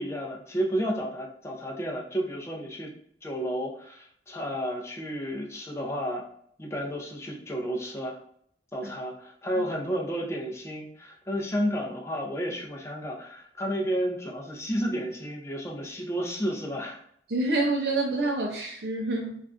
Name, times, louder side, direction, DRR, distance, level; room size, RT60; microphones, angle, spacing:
voice 1, 0.0-2.9 3.2-6.3 6.6-8.2 8.7-17.0, equal, 15° left, -1 dB, 0.5 m, -31 dB
voice 2, 17.3-19.4, right 2 dB, 65° right, 0 dB, 0.4 m, -27 dB
3.4 x 2.4 x 2.4 m, 0.66 s
head